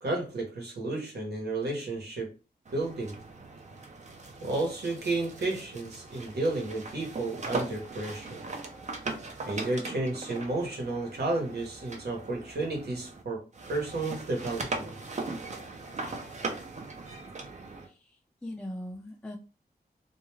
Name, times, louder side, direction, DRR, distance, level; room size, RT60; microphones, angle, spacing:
voice 1, 0.0-2.3 2.7-3.2 4.4-8.4 9.5-14.9, right 2 dB, 80° right, 1.0 m, -32 dB
sound 1, 2.7-13.2 13.5-17.9, right 3 dB, 45° right, 0.5 m, -39 dB
voice 2, 17.8-19.4, left 1 dB, 5° left, 0.4 m, -41 dB
2.4 x 2.2 x 3.1 m
wide cardioid pair, 90°, 17 cm